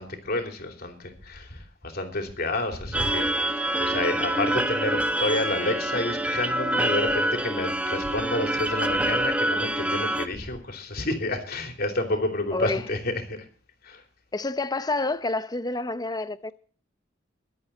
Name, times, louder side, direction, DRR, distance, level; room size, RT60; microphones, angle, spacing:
voice 1, 0.0-13.4 13.8-14.0, left 2 dB, 55° left, 3.2 m, -30 dB
sound 1, 2.9-10.3, right 1 dB, 5° right, 0.8 m, -26 dB
voice 2, 12.5-12.9 14.3-16.5, left 2 dB, 20° left, 0.7 m, -28 dB
23.0 x 8.3 x 4.2 m
head